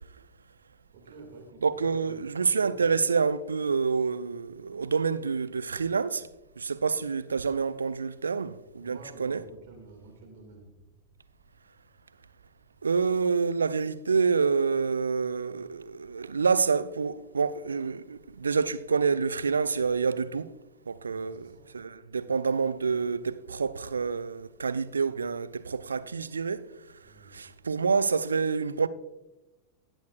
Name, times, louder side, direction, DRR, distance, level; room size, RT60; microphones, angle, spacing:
voice 1, 0.9-2.8 8.8-11.0 21.1-21.7 27.0-27.4, right 3 dB, 50° right, 1.9 m, -50 dB
voice 2, 1.6-6.3 6.6-9.4 12.8-20.5 20.9-21.5 21.7-26.6 27.3-28.9, right 5 dB, 75° right, 0.3 m, -27 dB
17.5 x 6.3 x 2.3 m
figure-of-eight pair, 90°, 0 cm